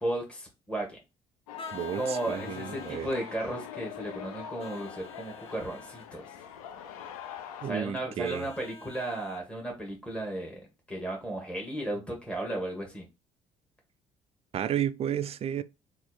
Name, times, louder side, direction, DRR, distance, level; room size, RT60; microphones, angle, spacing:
voice 1, 0.0-0.9 1.9-6.2 7.6-10.6 10.9-13.0, right 1 dB, 5° left, 1.1 m, -34 dB
sound 1, 1.5-7.7, left 9 dB, 75° left, 0.4 m, -43 dB
Vehicle horn car horn honking, 1.6-3.1 4.6-6.1 8.2-9.4, left 3 dB, 30° left, 0.7 m, -47 dB
voice 2, 1.7-3.1 7.6-8.5 14.5-15.6, right 9 dB, 35° right, 0.3 m, -32 dB
4.3 x 2.4 x 2.2 m
figure-of-eight pair, 50°, 18 cm